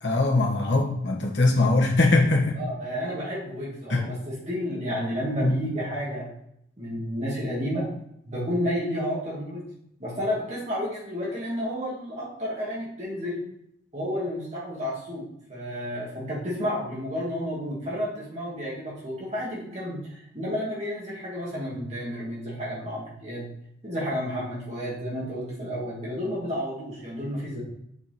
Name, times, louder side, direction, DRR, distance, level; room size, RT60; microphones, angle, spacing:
voice 1, 0.0-2.6 3.9-4.1 5.4-5.6, left 2 dB, 70° left, -1 dB, 1.5 m, -21 dB
voice 2, 2.6-6.3 6.8-7.9 8.2-9.6 10.0-13.4 13.9-23.5 23.8-27.6, equal, 35° right, -5 dB, 2.1 m, -31 dB
7.2 x 4.6 x 4.3 m, 0.73 s
head